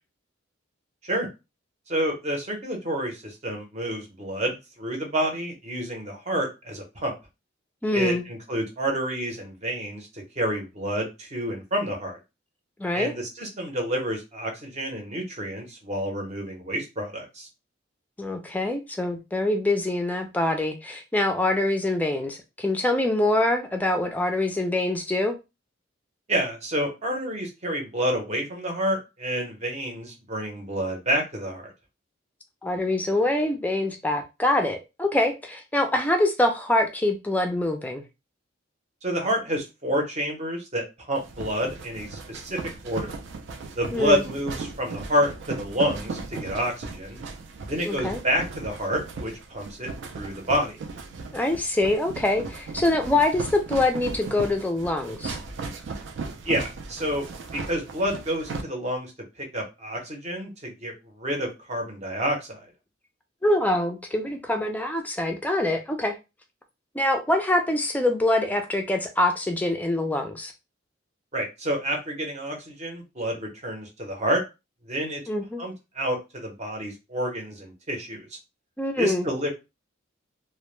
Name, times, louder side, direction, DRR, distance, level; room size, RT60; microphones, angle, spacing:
voice 1, 1.9-7.1 7.9-12.2 12.9-17.5 26.3-31.7 39.0-43.2 43.8-47.2 47.7-50.8 56.4-57.2 57.5-59.1 59.4-62.7 71.3-74.4 74.8-75.2 75.6-78.3 79.0-79.5, equal, 35° right, 2 dB, 0.7 m, -29 dB
voice 2, 7.8-8.2 12.8-13.1 18.2-25.3 32.6-38.0 43.9-44.2 47.8-48.2 51.3-55.4 63.4-66.1 66.9-70.5 75.3-75.6 78.8-79.3, left 1 dB, 10° left, 5 dB, 0.3 m, -24 dB
sound 1, 41.2-58.6, right 4 dB, 65° right, 0.4 m, -37 dB
2.1 x 2.1 x 3.0 m, 0.26 s
head